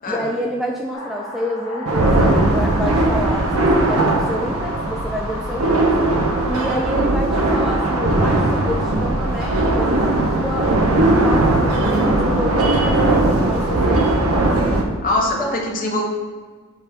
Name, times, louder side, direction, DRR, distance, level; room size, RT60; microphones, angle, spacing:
voice 1, 0.1-5.9 6.5-14.5 15.4-15.6, equal, ahead, 0 dB, 0.4 m, -28 dB
sound 1, 0.9-14.6, equal, 85° left, 1.8 m, -34 dB
sound 2, 1.9-14.8, right 2 dB, 85° right, 0.8 m, -18 dB
voice 2, 15.0-16.0, left 2 dB, 40° left, 0 dB, 1.1 m, -22 dB
7.3 x 3.4 x 5.2 m, 1.5 s
head